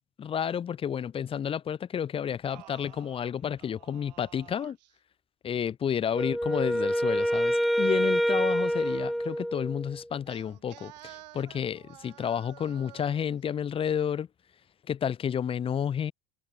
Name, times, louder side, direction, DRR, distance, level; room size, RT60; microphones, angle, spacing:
voice 1, 0.2-4.8 5.4-14.3 14.9-16.1, left 8 dB, 25° left, 2.0 m, -31 dB
Singing, 2.1-5.0 6.0-9.2 10.3-13.4, right 16 dB, 85° right, 7.9 m, -52 dB
Wind instrument woodwind instrument, 6.1-10.0, equal, ahead, 1.9 m, -27 dB
supercardioid pair, 135°, 21 cm